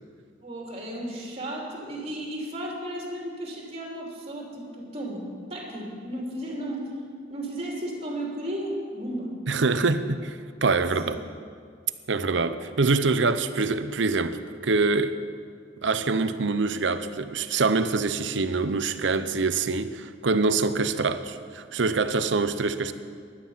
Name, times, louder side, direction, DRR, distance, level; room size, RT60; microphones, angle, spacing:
voice 1, 0.4-5.2 5.5-6.9 7.3-9.3 9.7-9.8, right 1 dB, 35° right, -2 dB, 3.1 m, -34 dB
voice 2, 9.5-10.4 10.6-11.2 12.1-14.4 14.6-15.2 15.8-22.9, right 3 dB, 70° right, 11 dB, 0.8 m, -25 dB
16.5 x 11.5 x 5.7 m, 2.1 s
head